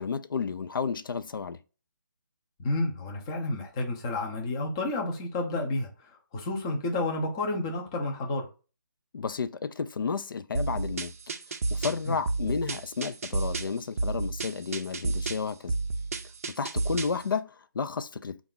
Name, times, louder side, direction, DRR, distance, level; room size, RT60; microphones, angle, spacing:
voice 1, 0.0-1.6 9.1-11.1 11.7-15.7 16.6-18.4, left 5 dB, 75° left, 0.4 m, -32 dB
voice 2, 2.6-5.9 6.3-8.5 12.1-12.2, left 2 dB, 15° left, 0.5 m, -30 dB
sound 1, 10.5-17.2, right 3 dB, 45° right, 0.4 m, -31 dB
3.9 x 2.4 x 3.7 m
hypercardioid pair, 165°, 11 cm